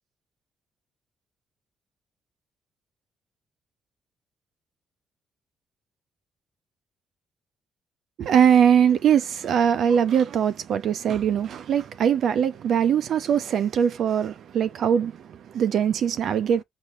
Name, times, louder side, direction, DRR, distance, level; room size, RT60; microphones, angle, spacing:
voice 1, 8.2-16.6, right 8 dB, 65° right, 0.5 m, -21 dB
4.2 x 2.2 x 3.2 m
cardioid pair, 90°, 0 cm